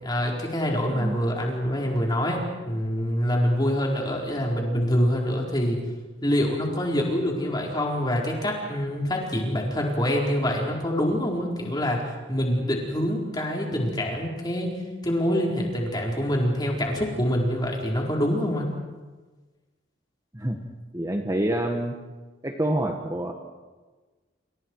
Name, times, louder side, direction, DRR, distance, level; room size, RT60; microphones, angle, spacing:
voice 1, 0.0-5.8 6.2-12.0 12.3-14.8 15.0-18.7, equal, 20° left, -1 dB, 4.7 m, -25 dB
voice 2, 20.9-21.9 22.4-23.3, right 1 dB, 15° right, 2 dB, 1.6 m, -27 dB
29.0 x 28.0 x 4.8 m, 1.3 s
head